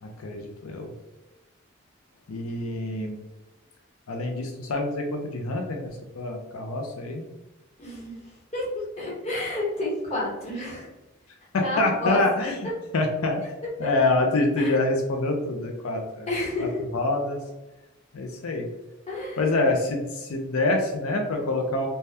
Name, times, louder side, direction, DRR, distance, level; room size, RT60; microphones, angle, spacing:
voice 1, 0.0-0.9 2.3-3.2 4.1-7.2 11.5-12.6 12.9-13.4 13.8-16.3 16.6-16.7 16.9-17.4 18.1-18.7 19.4-21.9, left 2 dB, 90° left, 2 dB, 0.5 m, -26 dB
voice 2, 7.8-10.9 11.6-12.5 13.8-13.9 14.6-14.8 16.3-16.8 19.1-19.4, left 2 dB, 30° left, -5 dB, 1.1 m, -30 dB
2.7 x 2.2 x 3.2 m, 1.0 s
head